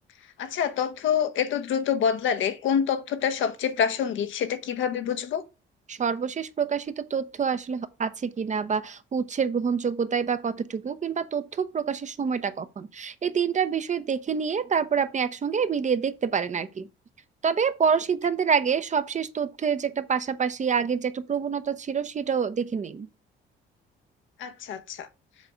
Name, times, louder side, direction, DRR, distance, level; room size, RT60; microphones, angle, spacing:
voice 1, 0.4-5.4 24.4-25.1, left 8 dB, 75° left, 1.0 m, -26 dB
voice 2, 5.9-16.9 17.4-23.1, right 6 dB, 35° right, 0.7 m, -27 dB
7.4 x 3.4 x 5.1 m
cardioid pair, 90°, 20 cm